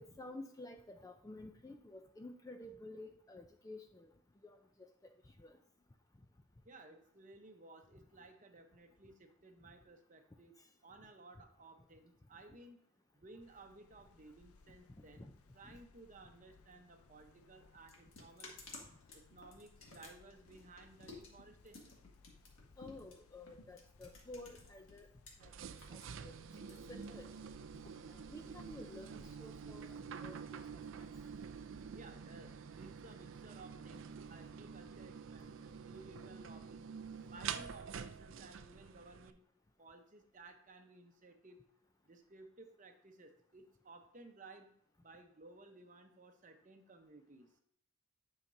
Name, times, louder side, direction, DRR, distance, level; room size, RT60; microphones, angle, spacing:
voice 1, 0.0-4.1 4.4-4.6 5.0-5.1 5.4-5.6 15.2-15.3 15.6-15.7 22.8-25.1 25.4-25.5 25.9-26.3 26.9-27.3 28.1-30.6 31.0-31.1, left 2 dB, 15° left, 5 dB, 0.4 m, -52 dB
voice 2, 6.6-10.5 10.8-12.8 13.1-15.3 15.5-18.6 19.1-22.0 31.9-36.9 37.3-39.4 39.8-41.6 42.0-44.7 45.0-47.5, right 2 dB, 35° right, 6 dB, 0.8 m, -57 dB
sound 1, 13.4-29.4, left 4 dB, 85° left, 0.5 m, -66 dB
sound 2, 17.1-25.3 25.6-27.5, left 3 dB, 65° left, 1.7 m, -56 dB
sound 3, 25.4-39.3, right 6 dB, 60° right, 0.4 m, -48 dB
10.5 x 5.8 x 2.6 m, 0.70 s
head